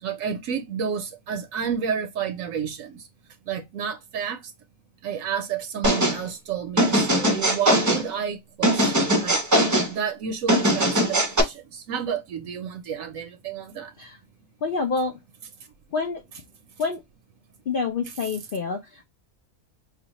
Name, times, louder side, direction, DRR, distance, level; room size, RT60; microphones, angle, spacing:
voice 1, 0.0-3.0 3.5-4.4 5.0-9.4 9.9-13.9, right 7 dB, 75° right, 1.0 m, -30 dB
sound 1, 5.8-6.2 6.8-8.0 8.6-9.9 10.5-11.4, right 1 dB, 25° right, 0.4 m, -20 dB
voice 2, 14.6-15.1 15.9-16.2 16.8-17.0 17.7-19.0, left 4 dB, 60° left, 0.6 m, -27 dB
4.9 x 2.3 x 2.9 m
omnidirectional pair, 1.4 m